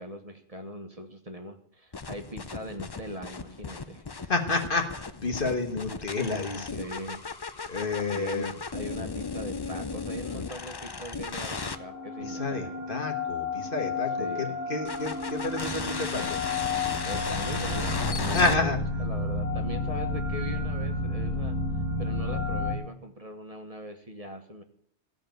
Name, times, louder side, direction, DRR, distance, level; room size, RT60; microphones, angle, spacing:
voice 1, 0.0-4.3 6.8-7.2 8.1-12.7 14.2-14.6 17.0-21.6 22.0-24.6, equal, 35° right, 4 dB, 1.2 m, -40 dB
sound 1, 1.9-11.8 14.8-18.5, left 4 dB, 30° left, 0.5 m, -36 dB
voice 2, 4.3-6.8 7.7-8.5 12.2-16.4 18.3-18.8, left 3 dB, 50° left, 4 dB, 1.6 m, -30 dB
sound 2, 11.5-22.7, left 3 dB, 15° right, 1.6 m, -31 dB
15.0 x 5.3 x 9.1 m, 0.63 s
omnidirectional pair, 1.1 m